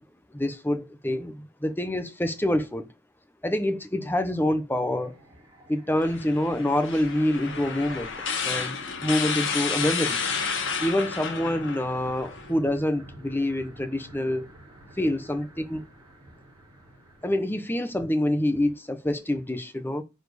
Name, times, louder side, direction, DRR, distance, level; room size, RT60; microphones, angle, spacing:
voice 1, 0.3-2.8 3.4-5.1 5.7-8.1 8.4-10.2 10.8-14.5 15.0-15.8 17.2-20.0, left 1 dB, 10° left, 1.0 m, -26 dB
sound 1, 4.9-17.3, right 1 dB, 20° right, 4.3 m, -49 dB
sound 2, 6.0-12.5, left 6 dB, 55° left, 1.6 m, -31 dB
9.8 x 4.4 x 6.8 m
head